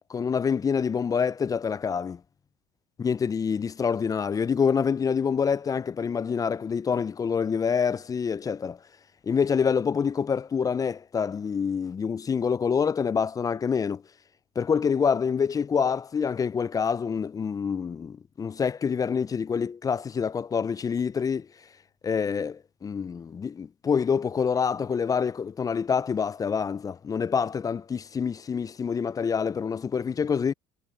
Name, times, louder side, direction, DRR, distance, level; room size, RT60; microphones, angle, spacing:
voice 1, 0.1-2.2 3.0-8.8 9.2-14.0 14.6-21.5 22.0-30.5, left 6 dB, 25° left, 0.4 m, -26 dB
supercardioid pair, 85°, 15 cm